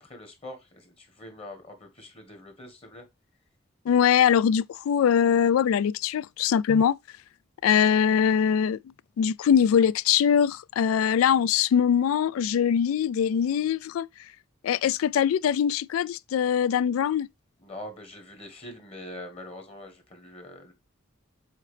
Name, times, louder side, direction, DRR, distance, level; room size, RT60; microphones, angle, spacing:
voice 1, 0.0-3.0 17.6-20.7, left 1 dB, 30° left, 1.5 m, -43 dB
voice 2, 3.9-7.0 7.6-8.8 9.2-14.1 14.6-17.3, left 8 dB, 90° left, 0.3 m, -22 dB
7.5 x 3.9 x 3.2 m
head